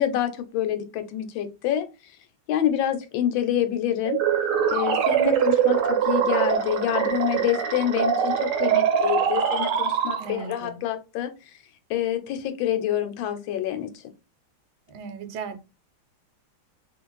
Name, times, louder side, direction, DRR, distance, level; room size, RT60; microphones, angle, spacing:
voice 1, 0.0-1.9 2.5-4.2 4.7-11.3 11.9-13.9, left 10 dB, 80° left, 1.3 m, -27 dB
sound 1, 4.0-10.5, right 8 dB, 70° right, 1.2 m, -23 dB
voice 2, 10.2-10.8 14.9-15.6, right 5 dB, 85° right, 1.4 m, -37 dB
3.0 x 2.5 x 3.0 m
omnidirectional pair, 2.2 m